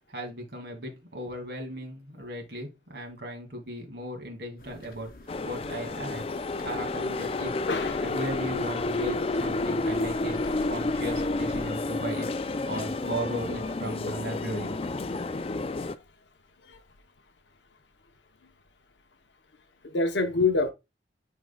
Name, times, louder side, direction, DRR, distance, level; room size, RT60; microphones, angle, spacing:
voice 1, 0.1-5.1 5.4-6.3 6.6-7.5 8.0-12.3 12.7-14.7, right 1 dB, 70° right, 2.3 m, -36 dB
sound 1, 4.6-11.7, left 1 dB, 55° left, 0.9 m, -46 dB
sound 2, 5.3-16.0, left 2 dB, 35° left, 0.4 m, -30 dB
voice 2, 7.7-8.1 16.7-16.8 19.8-20.7, left 3 dB, 85° left, 0.8 m, -26 dB
11.0 x 3.8 x 2.2 m
head